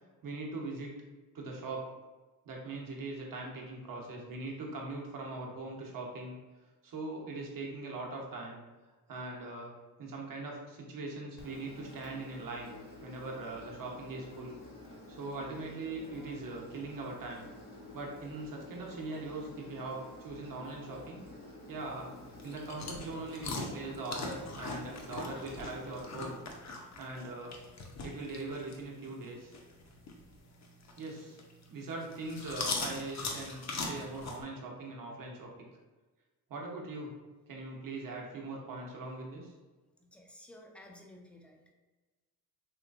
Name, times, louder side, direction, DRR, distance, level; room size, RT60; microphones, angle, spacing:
voice 1, 0.2-1.0 1.3-1.9 2.4-6.4 6.8-8.6 9.1-9.7 10.0-12.7 13.0-14.6 15.1-17.4 17.9-21.2 21.7-26.4 27.0-27.6 28.0-29.5 31.0-31.4 31.7-35.5 36.5-37.1 37.5-39.5, right 2 dB, 55° right, -1 dB, 0.9 m, -41 dB
Engine, 11.4-26.4, left 2 dB, 70° left, 1.4 m, -50 dB
sound 1, 21.8-34.4, left 3 dB, 40° left, 0.7 m, -42 dB
voice 2, 40.0-41.7, left 1 dB, 5° left, 1 dB, 0.5 m, -54 dB
3.1 x 3.1 x 2.5 m, 1.2 s
cardioid pair, 70°, 40 cm